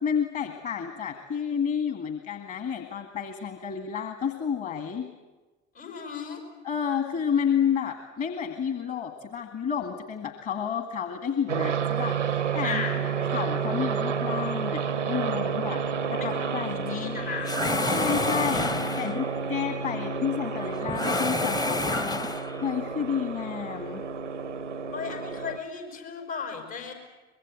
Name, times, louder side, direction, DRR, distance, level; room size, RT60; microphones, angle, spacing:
voice 1, 0.0-5.1 6.6-12.2 12.5-12.8 13.3-15.8 16.2-17.3 17.9-18.7 19.0-22.3 22.6-24.1, left 7 dB, 40° left, 6 dB, 1.9 m, -30 dB
voice 2, 5.7-6.4 12.6-13.0 16.2-16.4 16.7-17.5 18.3-18.9 24.9-26.9, left 5 dB, 70° left, 2 dB, 6.0 m, -36 dB
sound 1, 11.5-25.6, right 6 dB, 90° right, 0.7 m, -30 dB
sound 2, 17.4-19.3 20.9-22.6, left 2 dB, 10° left, 0.7 m, -28 dB
24.0 x 22.0 x 8.1 m, 1.2 s
figure-of-eight pair, 60°, 35 cm